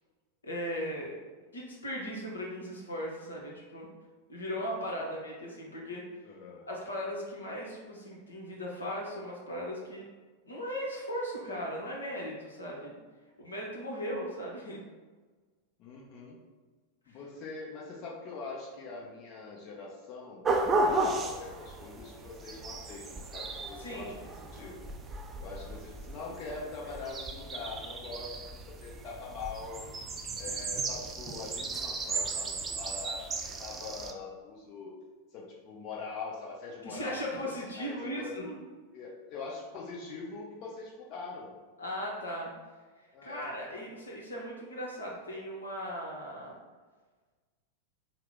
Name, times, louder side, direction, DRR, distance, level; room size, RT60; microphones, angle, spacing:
voice 1, 0.4-1.2 1.5-3.9 4.3-6.0 6.7-10.1 10.5-12.9 13.4-14.8 17.1-17.2 23.8-24.1 36.8-38.6 41.8-42.5 43.2-46.6, equal, 75° left, -2 dB, 0.8 m, -37 dB
voice 2, 3.2-3.6 5.0-5.1 6.2-6.7 15.8-16.4 17.1-24.8 25.4-29.8 30.4-35.0 35.3-37.2 37.8-38.4 38.9-41.5 43.1-43.5, left 4 dB, 40° left, -3 dB, 0.7 m, -43 dB
sound 1, 20.4-34.1, right 2 dB, 20° right, 0.4 m, -35 dB
4.6 x 2.0 x 3.6 m, 1.4 s
figure-of-eight pair, 90°, 0 cm